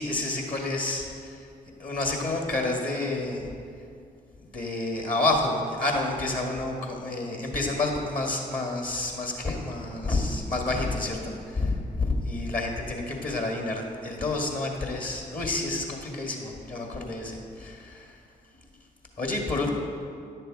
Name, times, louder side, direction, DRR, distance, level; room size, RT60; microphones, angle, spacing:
voice 1, 0.0-1.5 1.8-3.5 4.5-18.1 19.2-19.7, left 2 dB, 45° left, 1 dB, 2.1 m, -29 dB
10.5 x 6.7 x 4.9 m, 2.4 s
hypercardioid pair, 40°, 20 cm